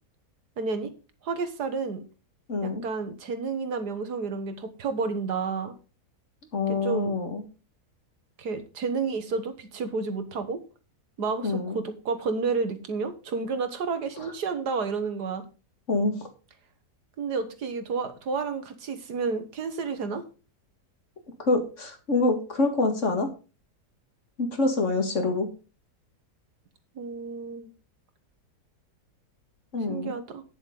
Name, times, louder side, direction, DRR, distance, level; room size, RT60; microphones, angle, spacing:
voice 1, 0.6-0.9 1.2-2.0 2.6-5.7 6.7-7.1 8.4-10.6 11.2-15.4 17.2-20.2 27.0-27.7 29.9-30.4, right 4 dB, 85° right, 9 dB, 2.0 m, -30 dB
voice 2, 2.5-2.8 6.5-7.4 11.4-11.8 14.2-14.3 15.9-16.1 21.4-23.3 24.4-25.5 29.7-30.1, left 3 dB, 50° left, 5 dB, 2.2 m, -26 dB
10.0 x 7.2 x 5.2 m, 0.34 s
omnidirectional pair, 1.7 m